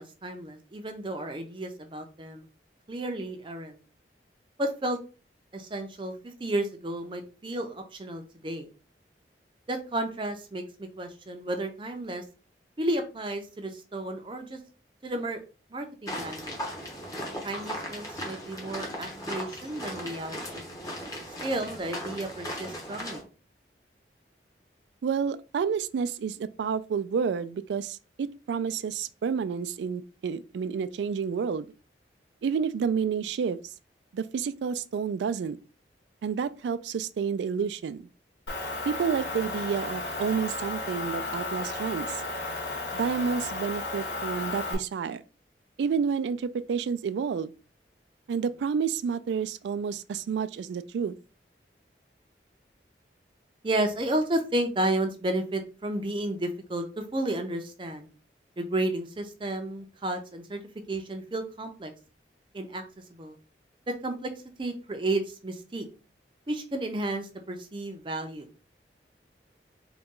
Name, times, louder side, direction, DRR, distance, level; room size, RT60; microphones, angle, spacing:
voice 1, 0.0-2.5 2.9-3.8 4.6-5.0 5.5-8.7 9.7-12.2 12.8-14.6 15.0-15.4 15.7-16.6 17.4-20.7 21.4-23.2 53.6-58.1 58.6-60.6 60.9-61.9 62.5-62.8 63.1-63.4 63.9-64.3 64.6-65.9 66.5-68.5, right 1 dB, 30° right, 0.5 m, -32 dB
sound 1, 16.1-23.2, equal, 20° left, 1.0 m, -37 dB
voice 2, 25.0-31.7 32.4-33.6 34.1-35.6 36.2-38.1 38.9-42.2 42.9-45.2 45.8-47.5 48.3-51.2, right 6 dB, 80° right, 0.3 m, -30 dB
Motor vehicle (road) / Engine, 38.5-44.7, left 2 dB, 80° left, 0.9 m, -34 dB
3.9 x 2.2 x 3.6 m
head